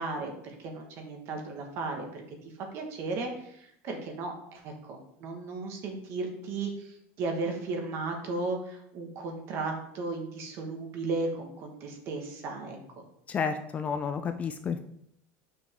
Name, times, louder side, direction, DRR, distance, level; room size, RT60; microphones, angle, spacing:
voice 1, 0.0-2.2 2.6-13.0, right 3 dB, 40° right, 3 dB, 1.5 m, -35 dB
voice 2, 13.3-14.8, left 6 dB, 20° left, 8 dB, 0.4 m, -31 dB
7.3 x 6.0 x 3.7 m, 0.75 s
cardioid pair, 160°, 7 cm